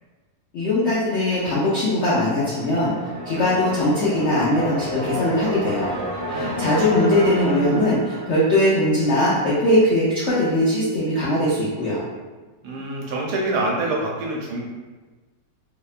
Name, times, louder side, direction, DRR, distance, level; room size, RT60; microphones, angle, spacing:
voice 1, 0.5-2.9 3.2-5.9 6.3-12.0, left 1 dB, 75° left, -8 dB, 0.6 m, -20 dB
sound 1, 1.8-9.5, equal, 60° right, 0.9 m, -31 dB
voice 2, 6.3-6.6 12.6-14.6, right 2 dB, 80° right, -3 dB, 1.2 m, -26 dB
2.8 x 2.1 x 2.4 m, 1.3 s
omnidirectional pair, 1.7 m